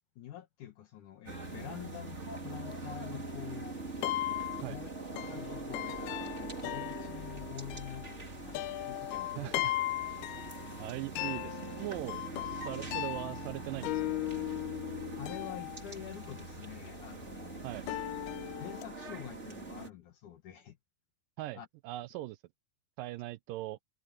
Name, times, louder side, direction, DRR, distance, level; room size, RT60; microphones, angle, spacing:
voice 1, 0.2-3.8 4.6-9.5 15.2-17.9 18.6-20.8 21.5-21.7, left 11 dB, 65° left, 2.3 m, -47 dB
sound 1, 1.3-19.9, right 3 dB, 20° right, 2.3 m, -43 dB
sound 2, 1.5-18.8, left 17 dB, 80° left, 2.6 m, -38 dB
voice 2, 9.4-9.7 10.8-14.2 17.6-17.8 21.4-22.4 23.0-23.8, right 17 dB, 85° right, 1.9 m, -40 dB
omnidirectional pair, 4.7 m